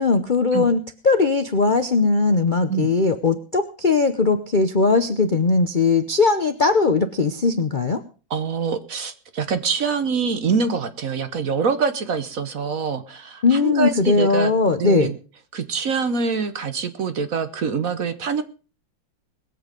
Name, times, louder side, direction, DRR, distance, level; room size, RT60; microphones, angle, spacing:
voice 1, 0.0-8.0 13.4-15.1, left 4 dB, 85° left, 8 dB, 0.4 m, -19 dB
voice 2, 8.3-15.1 15.5-18.4, right 5 dB, 50° right, 10 dB, 1.3 m, -25 dB
21.0 x 7.9 x 5.2 m, 0.37 s
omnidirectional pair, 2.2 m